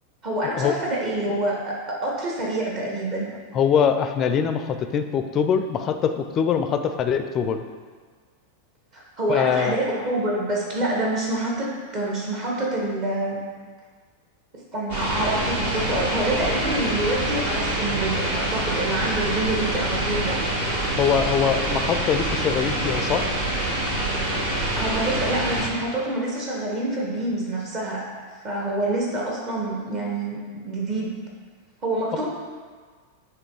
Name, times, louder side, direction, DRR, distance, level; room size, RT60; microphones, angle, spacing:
voice 1, 0.2-3.3 8.9-13.4 14.7-20.4 24.4-28.0 28.4-30.4 30.7-31.1 31.8-32.3, right 1 dB, 40° right, -3 dB, 1.5 m, -26 dB
voice 2, 3.5-7.6 9.3-9.8 21.0-23.2 32.1-32.2, left 7 dB, 30° left, 8 dB, 0.4 m, -23 dB
sound 1, 14.9-25.7, right 1 dB, 55° right, 1.6 m, -26 dB
7.5 x 3.2 x 4.6 m, 1.5 s
figure-of-eight pair, 90°, 0 cm